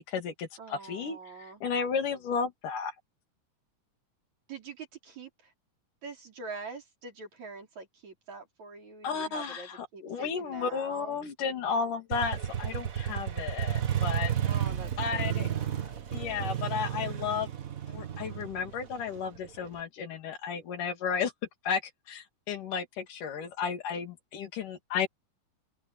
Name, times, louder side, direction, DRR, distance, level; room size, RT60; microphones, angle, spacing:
voice 1, 0.1-2.9 9.0-14.3 15.0-15.5 16.1-17.5 17.9-21.3 21.6-21.8 22.1-25.1, left 6 dB, 75° left, 4.1 m, -33 dB
voice 2, 0.6-1.6 4.5-5.5 6.0-11.2 14.4-16.1, right 4 dB, 60° right, 5.9 m, -45 dB
Motorcycle, 12.1-19.7, right 10 dB, 80° right, 0.7 m, -32 dB
open air
omnidirectional pair, 3.8 m